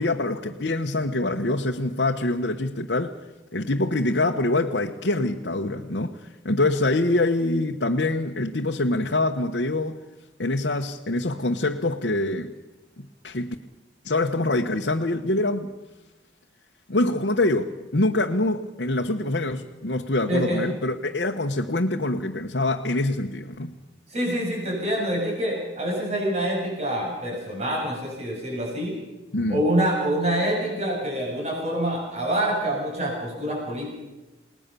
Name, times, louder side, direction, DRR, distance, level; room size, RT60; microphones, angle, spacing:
voice 1, 0.0-3.2 3.5-6.2 6.4-10.0 10.4-12.5 13.0-13.6 14.0-15.7 16.9-23.7 29.3-29.6, left 2 dB, 70° left, 2 dB, 1.2 m, -25 dB
voice 2, 20.3-20.6 24.1-28.9 29.5-33.9, right 1 dB, 35° right, -1 dB, 7.6 m, -26 dB
29.0 x 19.5 x 6.9 m, 1.1 s
head